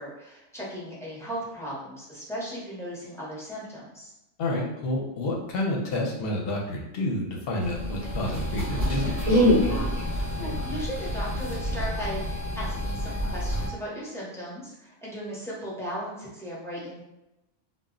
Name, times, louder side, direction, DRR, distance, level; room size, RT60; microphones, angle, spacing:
voice 1, 0.0-4.1 10.0-17.0, equal, 5° left, -7 dB, 0.5 m, -37 dB
voice 2, 4.4-9.5, left 1 dB, 60° left, -1 dB, 0.7 m, -29 dB
sound 1, 7.6-13.7, equal, 35° right, 0.6 m, -27 dB
2.1 x 2.0 x 3.6 m, 0.91 s
omnidirectional pair, 1.3 m